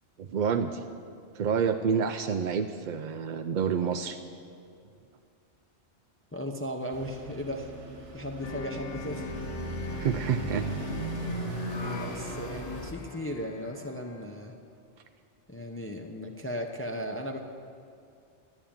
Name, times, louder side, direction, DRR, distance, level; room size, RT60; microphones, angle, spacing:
voice 1, 0.2-0.8 1.3-4.2 9.9-10.7, right 6 dB, 55° right, 6 dB, 0.5 m, -28 dB
voice 2, 6.3-7.7 8.1-9.3 12.0-14.5 15.5-17.4, left 1 dB, 15° left, 3 dB, 0.6 m, -36 dB
sound 1, 6.9-12.9, right 2 dB, 80° right, 1.8 m, -37 dB
sound 2, 8.4-14.4, left 4 dB, 90° left, 1.2 m, -40 dB
12.0 x 9.0 x 8.7 m, 2.3 s
omnidirectional pair, 1.2 m